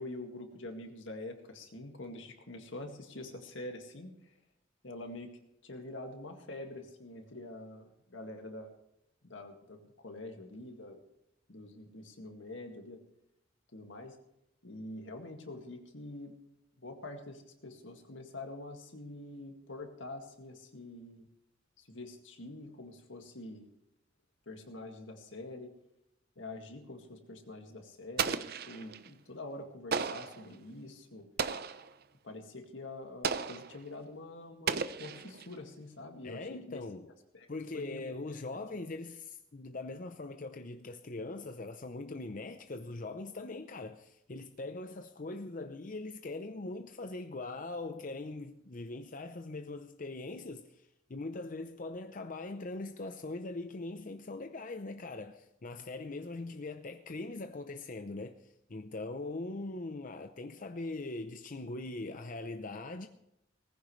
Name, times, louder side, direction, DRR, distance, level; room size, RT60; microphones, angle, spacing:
voice 1, 0.0-4.3 4.8-5.3 5.6-8.7 9.2-11.0 11.5-13.0 13.7-14.2 14.6-16.4 16.8-21.3 21.8-23.7 24.5-25.7 26.4-31.3 32.2-37.5 37.7-38.5, left 2 dB, 80° left, 2.0 m, -46 dB
Explosion, 28.2-29.1 29.9-30.5 31.4-31.9 33.2-33.8 34.7-35.5, right 6 dB, 55° right, 0.6 m, -34 dB
voice 2, 36.2-37.1 37.5-63.1, left 2 dB, 45° left, 0.7 m, -41 dB
19.0 x 15.0 x 3.2 m
head